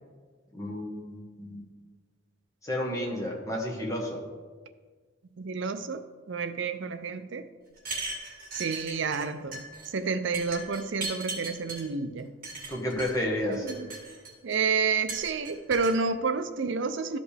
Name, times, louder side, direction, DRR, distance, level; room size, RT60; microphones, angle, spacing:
voice 1, 0.5-1.6 2.6-4.2 12.7-13.6, left 1 dB, 15° left, 1.2 m, -31 dB
voice 2, 5.4-7.5 8.5-9.7 9.9-12.3 13.4-13.9 14.4-17.2, right 5 dB, 60° right, 0.5 m, -30 dB
sound 1, 7.8-9.3 9.5-9.9 10.3-11.8 12.4-13.1 13.5-14.5 15.1-15.9, right 3 dB, 40° right, 2.6 m, -38 dB
13.0 x 5.1 x 3.3 m
head